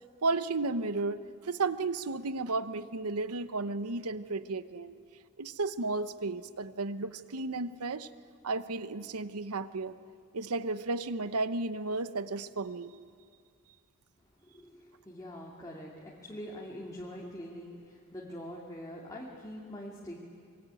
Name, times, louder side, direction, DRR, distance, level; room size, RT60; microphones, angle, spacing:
voice 1, 0.2-1.2 1.4-4.9 5.4-8.1 8.4-9.9 10.3-12.9, right 3 dB, 80° right, 13 dB, 0.9 m, -33 dB
voice 2, 14.4-20.2, equal, 15° left, -3 dB, 2.7 m, -44 dB
25.5 x 23.0 x 9.1 m, 2.2 s
head